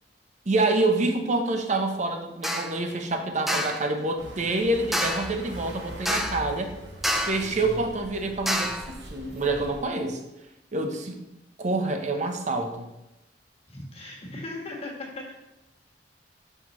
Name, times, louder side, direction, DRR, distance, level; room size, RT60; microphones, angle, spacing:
voice 1, 0.5-6.7 7.3-10.2 10.7-11.2 11.6-12.9, right 2 dB, 45° right, 5 dB, 0.7 m, -27 dB
sound 1, 2.4-2.8 3.5-3.9 4.9-5.4 6.1-6.5 7.0-7.5 8.5-8.9, equal, ahead, 0.5 m, -27 dB
sound 2, 4.2-9.8, equal, 75° right, 1.1 m, -41 dB
voice 2, 13.7-15.3, left 2 dB, 35° left, -2 dB, 1.4 m, -38 dB
6.0 x 5.6 x 3.0 m, 0.93 s
head